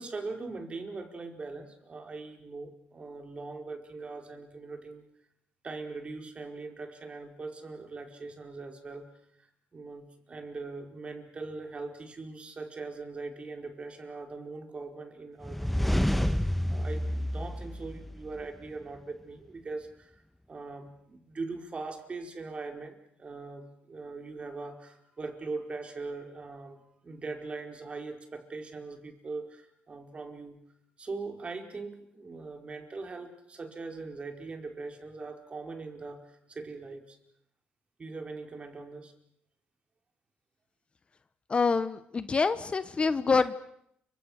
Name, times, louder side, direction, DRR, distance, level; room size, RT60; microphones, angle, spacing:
voice 1, 0.0-5.0 5.6-9.1 9.7-20.2 20.5-30.6 31.0-37.2 38.0-39.1, right 3 dB, 35° right, 4 dB, 4.8 m, -41 dB
sound 1, 15.4-18.4, equal, ahead, 1.5 m, -29 dB
voice 2, 41.5-43.5, left 4 dB, 30° left, 12 dB, 1.1 m, -26 dB
29.5 x 26.0 x 6.6 m, 0.75 s
cardioid pair, 105°, 4 cm